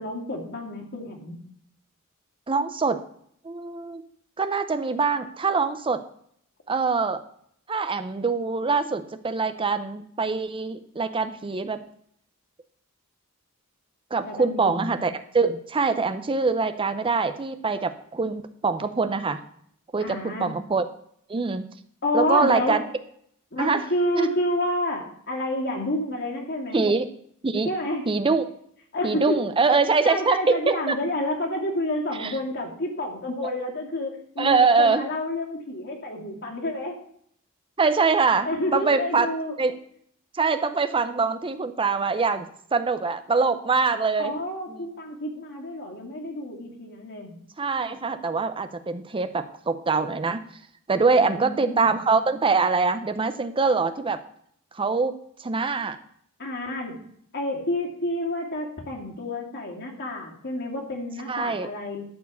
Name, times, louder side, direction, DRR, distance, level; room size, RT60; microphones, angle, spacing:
voice 1, 0.0-1.4 14.2-15.0 20.0-20.6 22.0-22.8 23.5-26.9 27.6-28.0 28.9-29.4 30.0-37.0 38.4-39.5 44.2-47.3 51.2-51.9 56.4-57.0 57.3-62.0, left 1 dB, 50° left, 0 dB, 2.6 m, -29 dB
voice 2, 2.5-3.0 3.4-4.0 4.4-6.0 6.7-7.2 7.7-11.8 14.1-19.4 19.9-20.8 21.3-21.7 22.1-22.8 23.6-23.8 24.1-24.3 26.7-27.1 27.4-27.7 28.1-28.4 29.0-30.9 32.2-32.4 34.4-35.1 37.8-39.3 39.6-39.8 40.3-44.3 44.7-44.8 47.6-50.4 50.9-54.2 54.7-56.0 61.3-61.7, right 4 dB, 25° right, 11 dB, 0.5 m, -24 dB
12.5 x 4.7 x 8.3 m, 0.67 s
head